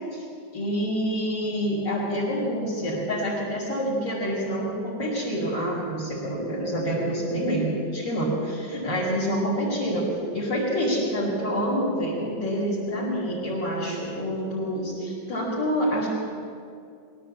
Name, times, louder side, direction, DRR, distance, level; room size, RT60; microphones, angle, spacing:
voice 1, 0.5-10.1 10.3-16.1, equal, 75° left, -8 dB, 6.4 m, -27 dB
24.5 x 17.0 x 8.8 m, 2.4 s
omnidirectional pair, 1.9 m